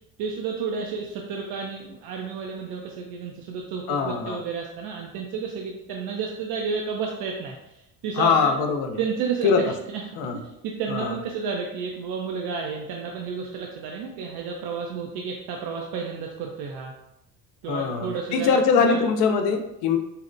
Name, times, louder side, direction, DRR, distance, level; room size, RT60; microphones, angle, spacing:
voice 1, 0.2-8.5 9.0-9.5 9.9-10.0 10.4-16.9 17.6-19.0, right 5 dB, 65° right, 1 dB, 0.5 m, -31 dB
voice 2, 3.9-4.4 8.2-9.0 9.4-9.6 10.2-10.4 10.9-11.2 17.7-20.0, left 5 dB, 65° left, 5 dB, 0.6 m, -22 dB
4.1 x 2.1 x 2.6 m, 0.85 s
supercardioid pair, 75°, 40 cm